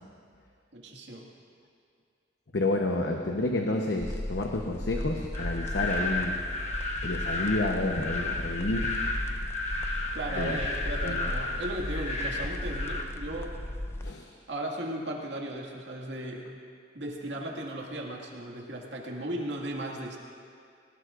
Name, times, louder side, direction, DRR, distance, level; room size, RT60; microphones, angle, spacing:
voice 1, 0.7-1.3 10.1-13.5 14.5-16.5 16.9-20.2, right 1 dB, 85° right, -1 dB, 2.0 m, -36 dB
voice 2, 2.5-6.4 7.0-8.9 10.3-10.6 11.0-11.3 14.0-14.3, left 2 dB, 75° left, 1 dB, 1.0 m, -30 dB
sound 1, 4.0-14.1, left 1 dB, 15° left, 0.4 m, -36 dB
sound 2, 5.3-13.0, left 2 dB, 40° left, 1.3 m, -33 dB
21.0 x 18.0 x 2.5 m, 2.3 s
head